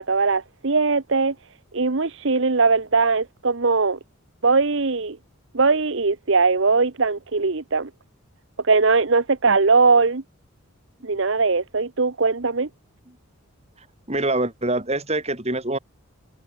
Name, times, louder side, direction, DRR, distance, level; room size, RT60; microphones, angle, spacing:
voice 1, 0.0-1.3 1.7-4.0 4.4-5.2 5.5-7.9 8.6-10.2 11.0-12.7, right 4 dB, 55° right, 1.0 m, -20 dB
voice 2, 14.1-15.8, right 2 dB, 30° right, 4.2 m, -24 dB
head